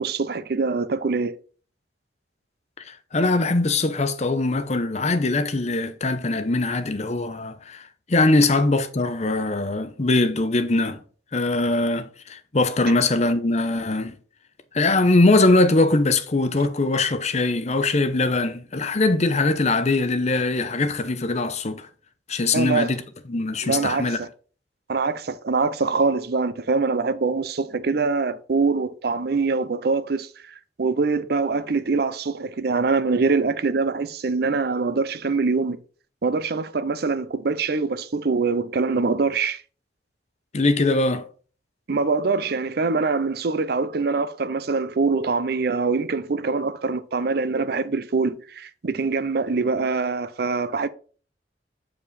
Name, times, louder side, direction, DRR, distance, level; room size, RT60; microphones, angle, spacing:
voice 1, 0.0-1.4 22.5-22.9 23.6-24.3 24.9-35.8 36.2-39.6 41.9-50.9, right 4 dB, 60° right, 0.6 m, -24 dB
voice 2, 2.8-11.0 11.3-14.2 14.7-21.9 22.3-23.0 23.3-24.2 40.5-41.3, left 2 dB, 40° left, 0.8 m, -21 dB
7.0 x 5.0 x 4.1 m
head